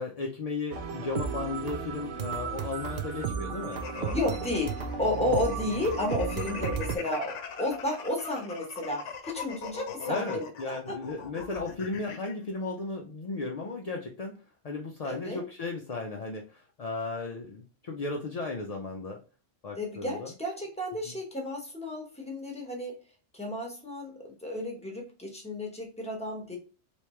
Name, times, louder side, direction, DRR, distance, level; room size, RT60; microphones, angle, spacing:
voice 1, 0.0-4.2 5.2-5.5 10.1-19.2 19.6-20.3 21.1-21.2, left 3 dB, 55° left, 0 dB, 0.4 m, -35 dB
sound 1, 0.7-7.0, right 6 dB, 65° right, 0.7 m, -34 dB
sound 2, 3.7-12.3, left 6 dB, 75° left, 1.0 m, -40 dB
voice 2, 4.1-10.5 10.9-11.0 15.0-15.4 19.8-22.9 23.3-26.6, left 1 dB, 5° left, 1 dB, 0.9 m, -32 dB
3.4 x 3.1 x 3.0 m, 0.35 s
omnidirectional pair, 1.2 m